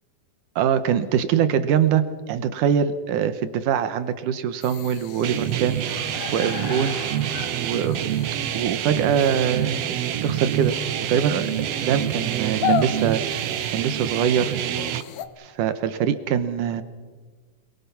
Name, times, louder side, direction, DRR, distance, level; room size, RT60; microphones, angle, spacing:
voice 1, 0.6-7.1 7.5-8.2 8.5-10.8 11.1-11.5 11.8-14.6 15.4-16.8, right 8 dB, 70° right, 11 dB, 2.4 m, -23 dB
sound 1, 4.6-15.3, left 9 dB, 90° left, 3.0 m, -34 dB
sound 2, 5.2-15.0, right 12 dB, 90° right, 1.4 m, -27 dB
27.5 x 22.5 x 5.9 m, 1.4 s
omnidirectional pair, 4.1 m